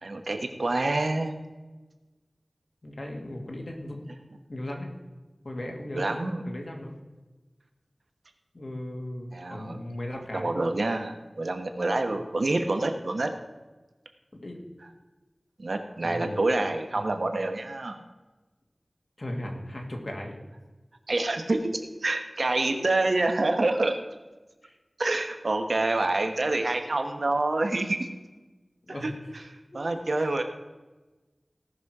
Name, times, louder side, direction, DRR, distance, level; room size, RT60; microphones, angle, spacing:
voice 1, 0.0-1.4 5.9-6.4 9.3-9.8 10.3-13.3 15.6-18.0 21.1-23.9 25.0-28.1 28.9-29.1 29.7-30.4, right 2 dB, 85° right, 6 dB, 1.2 m, -27 dB
voice 2, 2.8-4.0 4.5-4.9 5.4-6.2 6.5-6.9 8.5-10.5 14.3-14.6 16.0-16.4 16.9-17.1 19.2-20.4 22.7-22.8 24.6-24.8 28.9-29.1 29.7-30.0, left 1 dB, 50° left, 1 dB, 2.3 m, -37 dB
17.5 x 6.3 x 4.9 m, 1.2 s
wide cardioid pair, 60°, 0 cm